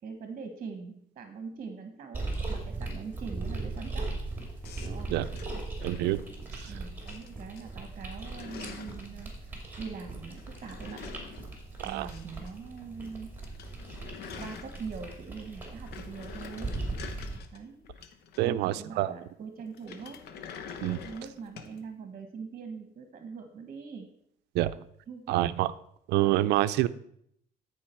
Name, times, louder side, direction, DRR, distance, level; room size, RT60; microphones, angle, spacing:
voice 1, 0.0-4.1 4.8-5.1 6.7-11.0 11.8-13.3 14.4-16.7 17.5-17.8 18.4-20.2 21.0-24.1 25.1-25.4, right 5 dB, 40° right, 6 dB, 1.3 m, -42 dB
sound 1, 2.1-17.4, right 3 dB, 10° right, 2.5 m, -39 dB
sound 2, 4.6-6.7 7.1-7.6 7.9-9.1 10.4-12.5 12.8-12.9 13.2-13.3 13.4-15.2 15.6-18.7 19.7-21.8, left 6 dB, 70° left, 0.9 m, -46 dB
voice 2, 5.8-6.2 6.5-6.7 11.8-12.1 18.4-19.1 20.8-21.0 24.5-24.8 25.3-25.7 26.1-26.9, right 15 dB, 80° right, 15 dB, 0.5 m, -27 dB
13.5 x 4.9 x 4.5 m, 0.70 s
cardioid pair, 110°, 17 cm